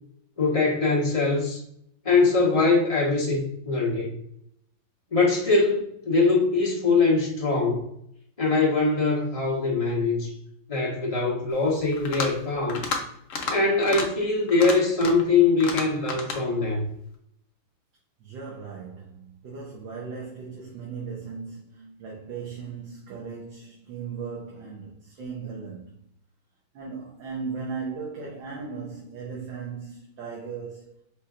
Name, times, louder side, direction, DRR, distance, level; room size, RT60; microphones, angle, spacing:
voice 1, 0.4-1.6 2.0-4.2 5.1-7.8 8.4-10.3 10.7-12.8 13.5-16.8, left 3 dB, 25° left, 0.9 m, -22 dB
sound 1, 11.9-12.4 12.7-13.0 13.3-13.6 13.8-14.1 14.5-15.3 15.6-16.4, left 5 dB, 60° left, 0.9 m, -31 dB
voice 2, 18.2-26.0 26.7-30.9, right 5 dB, 80° right, 1.6 m, -37 dB
5.4 x 3.2 x 2.4 m
omnidirectional pair, 2.0 m